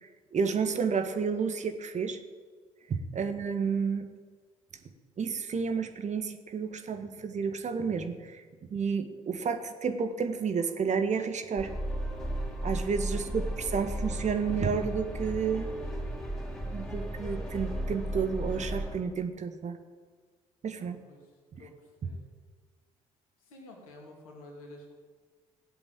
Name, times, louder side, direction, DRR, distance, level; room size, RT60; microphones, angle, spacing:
voice 1, 0.3-2.2 2.9-4.1 5.2-8.4 8.7-11.7 12.6-15.7 16.7-19.8 20.6-21.0, right 6 dB, 40° right, 8 dB, 1.6 m, -31 dB
sound 1, 11.6-19.0, equal, 5° left, 5.4 m, -35 dB
voice 2, 13.1-13.6 20.8-21.3 21.6-22.2 23.5-24.9, left 1 dB, 80° left, 1 dB, 2.7 m, -51 dB
17.0 x 7.9 x 8.9 m, 1.5 s
figure-of-eight pair, 50°, 18 cm